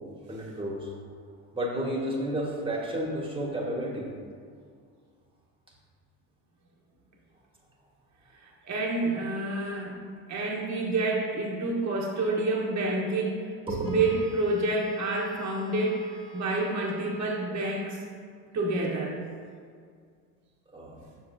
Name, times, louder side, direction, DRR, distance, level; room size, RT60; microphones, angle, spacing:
voice 1, 0.3-0.9 1.5-4.1 13.7-13.9 20.7-21.0, right 1 dB, 10° right, -2 dB, 1.6 m, -31 dB
voice 2, 8.4-9.9 10.3-13.4 13.8-18.0 18.5-19.2, right 2 dB, 35° right, -3 dB, 1.4 m, -28 dB
Wind instrument woodwind instrument, 13.8-17.9, equal, 30° left, 1.1 m, -48 dB
7.2 x 6.1 x 2.8 m, 2.1 s
hypercardioid pair, 65°, 46 cm